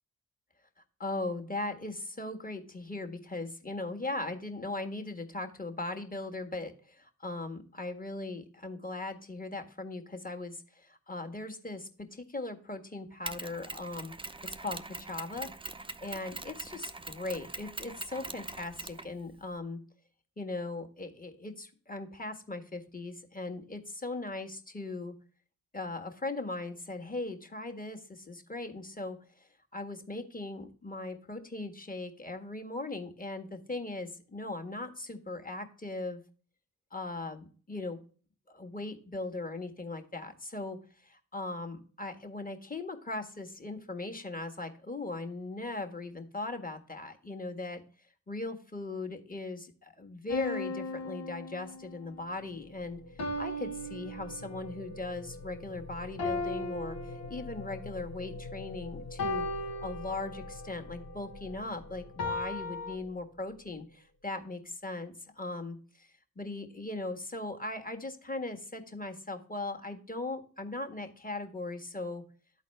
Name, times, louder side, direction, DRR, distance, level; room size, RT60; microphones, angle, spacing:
voice 1, 1.0-14.1 14.6-15.5 16.0-19.8 20.4-25.1 25.7-36.2 36.9-38.0 38.5-40.8 41.0-47.8 48.3-59.5 59.8-66.1 66.4-72.2, left 2 dB, 25° left, 4 dB, 1.6 m, -39 dB
Mechanisms, 13.3-19.6, right 3 dB, 15° right, 0.5 m, -43 dB
sound 1, 50.3-52.1 53.2-54.8 56.2-57.9 59.2-60.7 62.2-63.0, left 2 dB, 90° left, 1.7 m, -37 dB
sound 2, 51.9-64.1, left 2 dB, 50° left, 1.2 m, -46 dB
11.5 x 4.1 x 3.3 m, 0.42 s
supercardioid pair, 40°, 36 cm